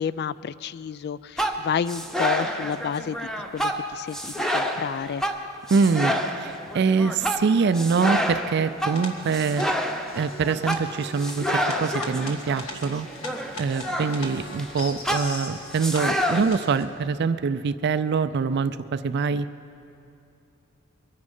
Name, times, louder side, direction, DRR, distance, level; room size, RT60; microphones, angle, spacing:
voice 1, 0.0-5.2, left 7 dB, 50° left, 18 dB, 0.3 m, -30 dB
sound 1, 1.4-14.7 15.0-16.4, equal, ahead, 0.7 m, -28 dB
voice 2, 5.7-9.6 10.1-13.1 13.6-19.5, right 5 dB, 50° right, 12 dB, 0.4 m, -24 dB
sound 2, 8.9-16.8, left 2 dB, 75° left, 1.6 m, -40 dB
23.0 x 9.7 x 5.4 m, 2.8 s
head